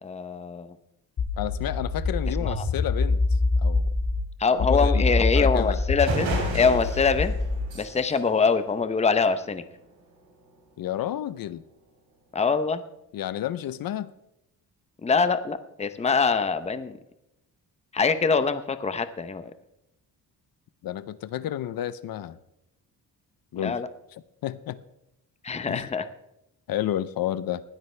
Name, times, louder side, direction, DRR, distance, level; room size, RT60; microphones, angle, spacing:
voice 1, 0.0-0.8 2.4-2.7 4.4-7.3 7.7-9.6 12.3-12.8 15.0-17.0 17.9-19.5 23.5-23.9 25.4-26.1, left 5 dB, 15° left, 11 dB, 0.7 m, -24 dB
sound 1, 1.2-4.2 4.6-7.6, left 3 dB, 50° left, 2.2 m, -25 dB
voice 2, 1.4-3.2 3.6-3.9 4.7-5.1 5.3-5.8 10.8-11.6 13.1-14.1 20.8-22.4 23.5-23.8 24.4-24.8 25.7-25.8 26.7-27.6, left 12 dB, 65° left, 15 dB, 0.6 m, -30 dB
sound 2, 5.6-5.7 6.0-9.5, right 3 dB, 70° right, 3.7 m, -34 dB
19.0 x 12.5 x 3.3 m, 0.86 s
cardioid pair, 135°, 38 cm